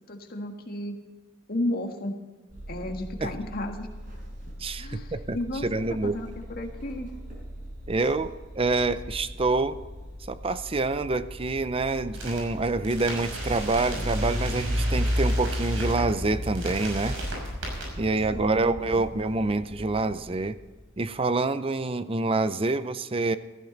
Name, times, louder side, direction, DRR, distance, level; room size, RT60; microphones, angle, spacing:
voice 1, 0.1-1.0 1.5-2.1 2.7-3.9 4.8-7.1 18.3-19.0, left 1 dB, 45° left, 4 dB, 1.7 m, -33 dB
sound 1, 2.5-21.0, equal, 45° right, 6.1 m, -34 dB
voice 2, 4.6-5.4 5.6-6.2 7.9-9.8 10.3-17.2 18.0-20.6 21.0-23.4, right 3 dB, 25° right, 13 dB, 0.6 m, -27 dB
sound 2, 12.1-12.4 12.8-16.0 16.4-17.8, right 2 dB, 75° right, 6.3 m, -38 dB
sound 3, 13.9-15.6, left 1 dB, 5° left, 3.9 m, -39 dB
16.0 x 15.0 x 4.0 m, 1.3 s
head